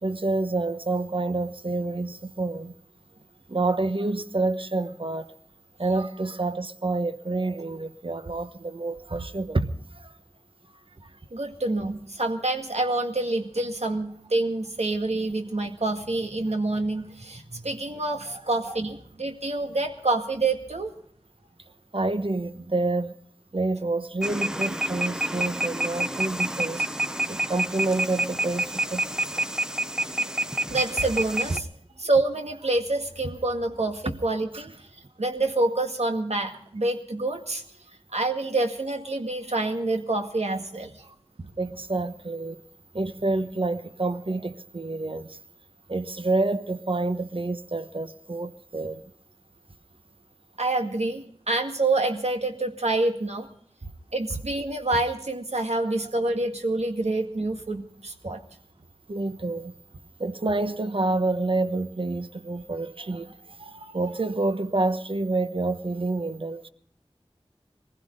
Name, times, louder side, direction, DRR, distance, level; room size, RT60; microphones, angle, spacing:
voice 1, 0.0-2.7 3.5-5.3 5.8-10.1 11.0-11.1 18.3-18.8 21.9-23.2 23.5-26.8 27.3-29.0 29.4-29.5 34.5-34.7 41.4-42.6 42.9-45.4 45.9-49.0 55.8-55.9 59.1-59.7 60.2-66.7, right 2 dB, 55° right, 1.1 m, -28 dB
voice 2, 11.3-20.9 30.7-31.7 32.0-34.7 35.2-37.6 38.1-40.9 50.6-53.5 54.1-58.4, right 2 dB, 80° right, 2.0 m, -27 dB
sound 1, 24.2-31.6, right 1 dB, 5° right, 0.7 m, -28 dB
22.5 x 15.5 x 3.8 m
wide cardioid pair, 50°, 11 cm